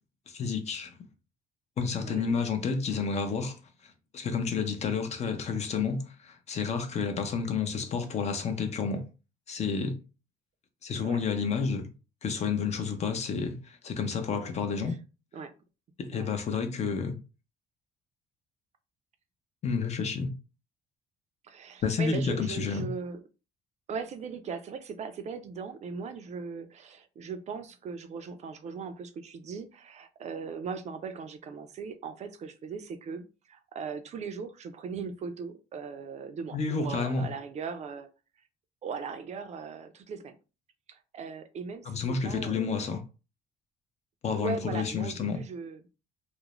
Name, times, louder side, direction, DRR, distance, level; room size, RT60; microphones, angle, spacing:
voice 1, 0.3-0.9 1.8-9.1 9.5-10.0 10.8-11.9 12.2-15.0 16.0-17.2 19.6-20.3 21.8-22.9 36.5-37.3 41.9-43.0 44.2-45.4, left 5 dB, 40° left, 0.5 m, -30 dB
voice 2, 2.0-2.4 11.0-11.2 14.8-15.0 15.3-15.5 16.1-16.3 21.4-23.2 23.9-38.1 38.8-40.4 40.9-42.9 44.3-45.8, right 5 dB, 40° right, 0.4 m, -39 dB
2.4 x 2.0 x 3.0 m
cardioid pair, 110°, 17 cm